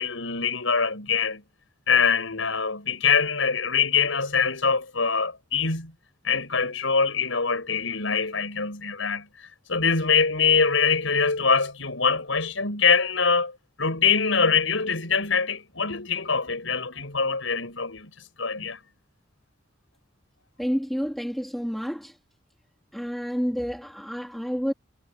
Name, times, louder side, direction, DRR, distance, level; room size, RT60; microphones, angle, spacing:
voice 1, 0.0-1.4 1.9-5.9 6.2-9.3 9.7-18.1 18.4-18.8, left 5 dB, 80° left, 6.0 m, -24 dB
voice 2, 20.6-22.1 22.9-24.7, equal, ahead, 3.4 m, -29 dB
head